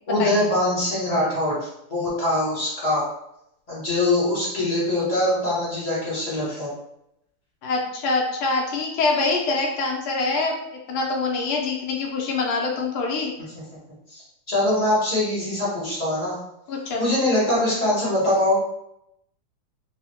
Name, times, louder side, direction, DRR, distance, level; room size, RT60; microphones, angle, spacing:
voice 1, 0.1-3.1 3.7-6.7 14.1-14.2 14.5-16.4 17.0-18.6, left 1 dB, 60° left, -9 dB, 0.4 m, -23 dB
voice 2, 7.6-10.5 10.9-13.3 16.7-17.1, left 3 dB, 80° left, 0 dB, 1.6 m, -24 dB
3.7 x 2.0 x 2.8 m, 0.81 s
omnidirectional pair, 2.4 m